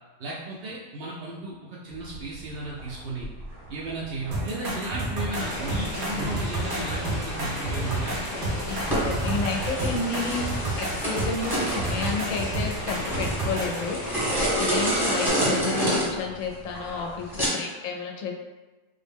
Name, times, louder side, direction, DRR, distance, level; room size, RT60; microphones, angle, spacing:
voice 1, 0.2-3.3 3.7-8.3, right 2 dB, 65° right, -5 dB, 0.6 m, -35 dB
sound 1, 1.9-17.5, right 1 dB, ahead, 0.7 m, -30 dB
sound 2, 4.3-13.9 15.3-15.4, right 2 dB, 85° right, 1.3 m, -31 dB
sound 3, 5.3-14.9, left 1 dB, 50° left, 0.7 m, -36 dB
voice 2, 8.7-10.4 10.8-14.0 14.6-18.3, left 4 dB, 70° left, 1 dB, 0.9 m, -31 dB
3.7 x 2.1 x 3.4 m, 1.2 s
omnidirectional pair, 1.5 m